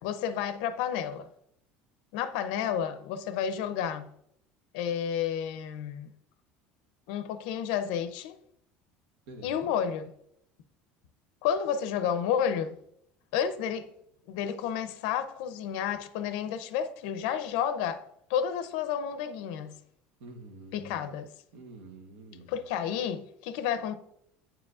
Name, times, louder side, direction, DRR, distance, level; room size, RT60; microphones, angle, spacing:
voice 1, 0.0-1.3 2.1-4.1 4.7-6.1 7.1-8.4 9.4-10.1 11.4-12.7 13.3-13.9 14.3-18.0 18.3-19.8 20.7-21.3 22.5-24.0, left 8 dB, 75° left, 0.6 m, -31 dB
voice 2, 9.3-9.7 20.2-21.1 21.5-22.5, right 2 dB, 80° right, 1.1 m, -47 dB
9.1 x 4.9 x 2.4 m
cardioid pair, 170°, 4 cm